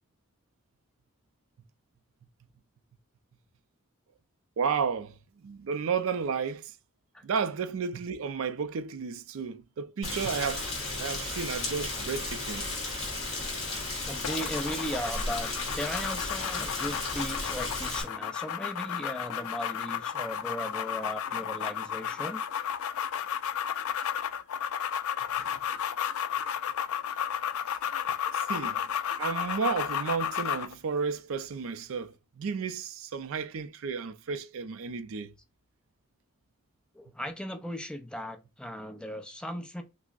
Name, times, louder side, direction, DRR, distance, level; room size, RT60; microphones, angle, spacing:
voice 1, 4.6-5.2 5.4-6.7 7.2-12.8 25.4-25.6 28.3-28.8 29.2-35.3, right 6 dB, 70° right, 0.4 m, -32 dB
Rain, 10.0-18.0, left 2 dB, 35° left, 2.4 m, -34 dB
voice 2, 14.1-22.4 36.9-39.8, equal, 5° left, 0.5 m, -37 dB
sound 1, 14.2-30.7, left 9 dB, 85° left, 0.4 m, -33 dB
5.9 x 2.0 x 2.4 m
head